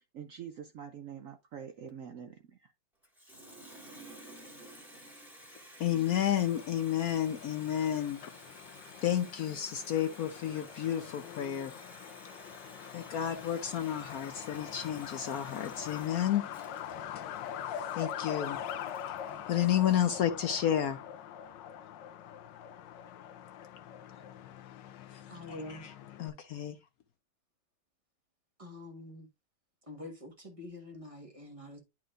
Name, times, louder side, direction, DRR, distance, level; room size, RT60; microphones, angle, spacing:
voice 1, 0.0-2.7, right 8 dB, 65° right, 0.8 m, -45 dB
Water tap faucet, 3.0-19.9, right 1 dB, ahead, 1.7 m, -53 dB
voice 2, 5.8-8.2 9.0-11.7 12.9-16.4 17.7-18.6 19.5-21.0 25.1-25.2 25.7-25.9 26.2-26.8, left 10 dB, 65° left, 1.0 m, -31 dB
Truck, 6.3-26.3, left 9 dB, 90° left, 1.4 m, -44 dB
voice 3, 25.3-25.9 28.6-29.3 29.9-31.8, left 2 dB, 20° right, 1.3 m, -45 dB
10.5 x 4.5 x 2.5 m
omnidirectional pair, 1.9 m